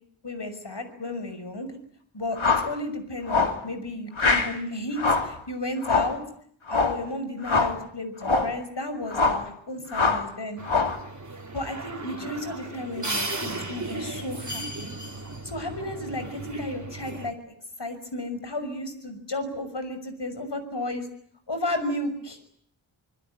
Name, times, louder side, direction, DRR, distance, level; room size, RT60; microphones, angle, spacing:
voice 1, 0.2-1.7 2.1-6.2 6.7-10.6 11.5-14.9 15.4-17.3 17.8-21.1 21.5-22.4, left 1 dB, 60° left, 9 dB, 6.1 m, -33 dB
sound 1, 2.4-2.7 3.3-3.6 4.2-4.5 5.0-5.3 5.8-6.2 6.7-7.0 7.4-7.8 8.2-8.6 9.1-9.5 9.9-10.3 10.6-11.0, left 4 dB, 85° left, 2.7 m, -23 dB
sound 2, 10.6-17.3, right 2 dB, 40° right, 3.2 m, -35 dB
26.5 x 21.0 x 9.8 m, 0.65 s
wide cardioid pair, 55°, 47 cm